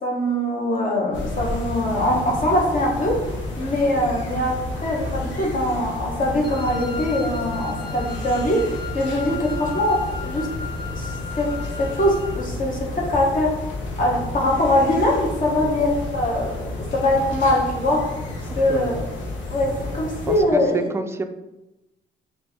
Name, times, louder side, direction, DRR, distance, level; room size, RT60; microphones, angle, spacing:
voice 1, 0.0-3.2 3.6-4.5 4.8-10.5 10.9-11.5 11.8-13.5 14.0-18.0 18.5-19.0 19.5-20.9, left 1 dB, 45° left, -2 dB, 1.0 m, -22 dB
sound 1, 1.1-20.4, left 2 dB, 75° left, 1.0 m, -31 dB
Wind instrument woodwind instrument, 6.4-12.5, left 5 dB, 25° left, 0.7 m, -36 dB
voice 2, 18.5-19.0 20.3-21.2, right 3 dB, 15° right, 7 dB, 0.3 m, -30 dB
4.0 x 2.6 x 3.5 m, 0.99 s
cardioid pair, 90°, 20 cm